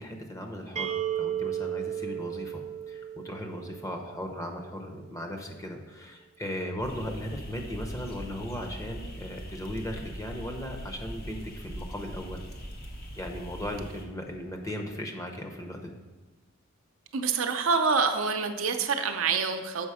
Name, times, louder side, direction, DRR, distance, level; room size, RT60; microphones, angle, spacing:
voice 1, 0.0-12.5 13.2-16.0, equal, 15° left, 3 dB, 0.8 m, -37 dB
sound 1, 0.8-4.5, right 10 dB, 35° right, 0.4 m, -34 dB
sound 2, 6.8-14.0, equal, 50° left, 1.0 m, -41 dB
voice 2, 17.1-19.9, right 5 dB, 85° right, 6 dB, 0.6 m, -26 dB
7.1 x 5.0 x 4.9 m, 1.2 s
head